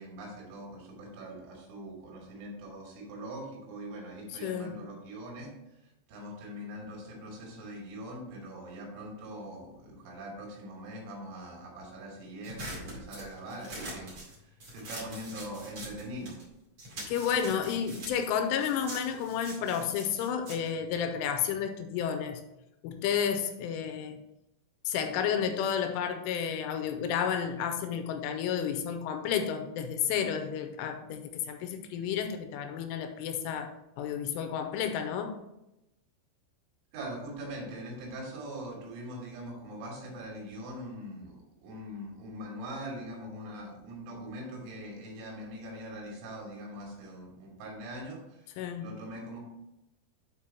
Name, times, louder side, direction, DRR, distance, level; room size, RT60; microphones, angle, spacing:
voice 1, 0.0-5.5 5.8-14.1 14.4-16.4 36.9-41.4 41.6-49.4, equal, 85° right, -1 dB, 4.8 m, -42 dB
voice 2, 4.3-4.7 17.1-22.4 22.8-24.2 24.9-35.4 48.6-48.9, left 8 dB, 85° left, 7 dB, 3.1 m, -31 dB
sound 1, 12.4-16.5 16.8-21.6, right 1 dB, 40° right, 2.1 m, -44 dB
8.9 x 4.4 x 4.5 m, 0.90 s
omnidirectional pair, 5.8 m